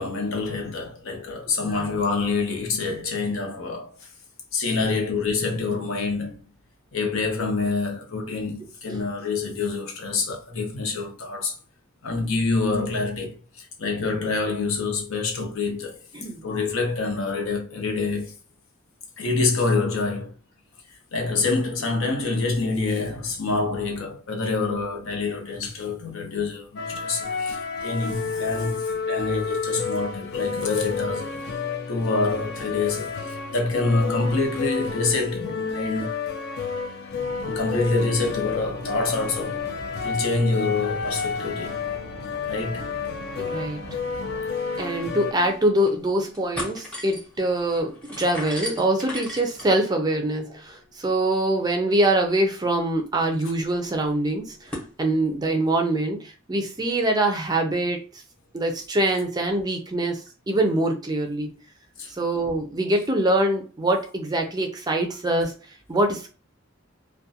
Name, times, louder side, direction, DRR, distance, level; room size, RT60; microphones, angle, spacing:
voice 1, 0.0-4.1 4.5-6.4 6.9-11.5 12.0-16.1 16.4-18.3 19.2-20.3 21.1-31.4 31.9-36.2 37.4-39.6 40.0-41.8 42.5-42.9 62.0-62.1, left 3 dB, 80° left, 0.7 m, -26 dB
voice 2, 16.1-16.4 43.4-44.0 44.8-54.7 55.0-58.1 58.5-61.5 62.2-65.5 65.9-66.3, right 1 dB, 20° right, 0.4 m, -24 dB
sound 1, 26.8-45.3, left 5 dB, 50° left, 0.4 m, -30 dB
sound 2, 37.1-44.4, right 2 dB, 80° right, 0.4 m, -42 dB
sound 3, 44.9-45.0 45.5-46.0 46.3-54.9, left 1 dB, 5° left, 0.8 m, -40 dB
2.4 x 2.2 x 2.7 m
head